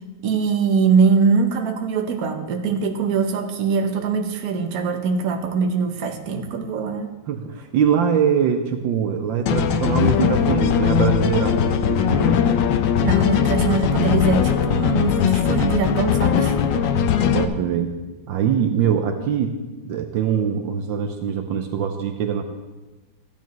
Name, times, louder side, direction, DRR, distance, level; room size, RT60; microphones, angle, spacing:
voice 1, 0.2-7.1 13.0-16.6, right 5 dB, 55° right, 4 dB, 1.3 m, -22 dB
voice 2, 7.3-12.4 14.7-15.1 16.7-17.1 17.3-17.9 18.3-19.6 19.8-22.4, right 8 dB, 75° right, 6 dB, 1.4 m, -23 dB
sound 1, 9.5-17.5, left 8 dB, 75° left, 1.3 m, -20 dB
15.0 x 10.5 x 3.1 m, 1.2 s
omnidirectional pair, 2.2 m